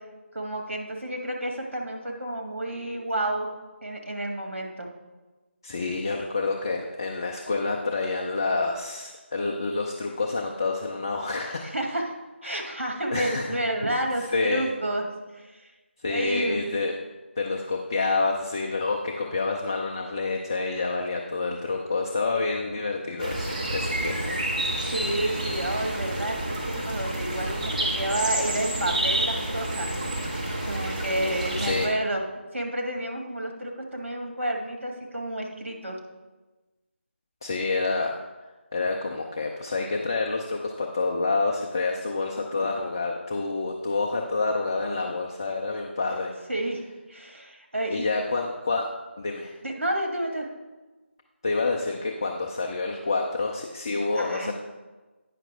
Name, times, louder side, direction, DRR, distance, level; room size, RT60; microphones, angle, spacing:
voice 1, 0.3-3.5 3.8-4.9 11.6-12.1 12.4-15.1 15.3-15.7 16.1-16.6 24.0-24.1 24.8-29.9 30.7-32.2 32.5-36.0 46.5-46.8 47.1-48.1 49.6-50.5 54.1-54.5, right 1 dB, 75° right, 1 dB, 1.7 m, -30 dB
voice 2, 5.6-11.7 12.5-12.6 13.1-13.5 14.3-14.7 16.0-16.9 17.4-24.4 31.6-31.9 37.4-38.1 38.7-46.3 47.9-48.8 49.2-49.5 51.4-54.5, left 3 dB, 20° left, 1 dB, 0.4 m, -28 dB
sound 1, 23.2-31.9, right 1 dB, 35° right, 1.3 m, -29 dB
9.1 x 5.8 x 3.4 m, 1.2 s
figure-of-eight pair, 165°, 7 cm